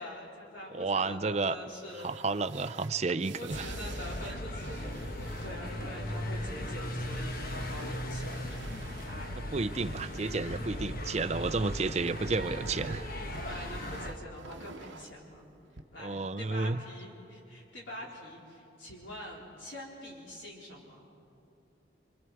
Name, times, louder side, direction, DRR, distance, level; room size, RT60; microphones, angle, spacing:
voice 1, 0.0-2.1 2.6-2.8 3.3-8.5 9.0-9.3 13.4-15.5 15.9-21.1, left 1 dB, 75° left, -3 dB, 3.9 m, -45 dB
voice 2, 0.7-1.6 2.0-3.7 9.4-13.1 16.0-16.8, right 3 dB, 35° right, 13 dB, 0.5 m, -31 dB
sound 1, 1.7-11.5 11.8-15.8, right 5 dB, 70° right, 0.9 m, -52 dB
sound 2, 3.5-14.1, left 1 dB, 50° left, 1.2 m, -38 dB
27.5 x 26.0 x 4.7 m, 2.8 s
head